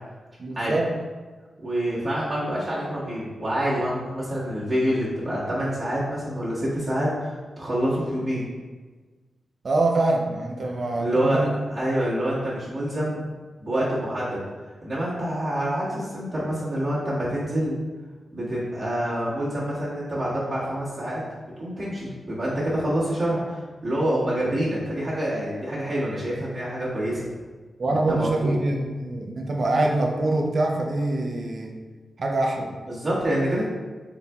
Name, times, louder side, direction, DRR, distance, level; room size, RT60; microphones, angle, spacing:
voice 1, 0.4-0.9 9.6-11.5 27.8-31.7 32.2-32.7, right 2 dB, 50° right, 1 dB, 0.5 m, -24 dB
voice 2, 1.6-8.4 11.0-13.2 13.6-14.4 14.8-17.8 18.3-21.2 21.6-27.3 28.1-28.6 32.8-33.7, right 1 dB, 35° right, -9 dB, 1.4 m, -26 dB
4.2 x 4.0 x 2.3 m, 1.3 s
wide cardioid pair, 125°, 0 cm